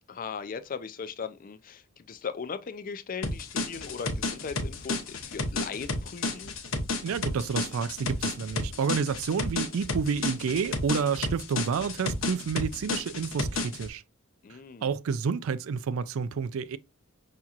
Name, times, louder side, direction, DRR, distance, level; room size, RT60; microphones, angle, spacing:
voice 1, 0.1-6.5 14.4-14.9, left 5 dB, 40° left, 0.4 m, -38 dB
sound 1, 3.2-13.9, left 2 dB, 65° left, 0.9 m, -32 dB
voice 2, 7.0-14.0 14.5-16.8, right 6 dB, 70° right, 0.4 m, -30 dB
5.8 x 2.8 x 2.4 m
head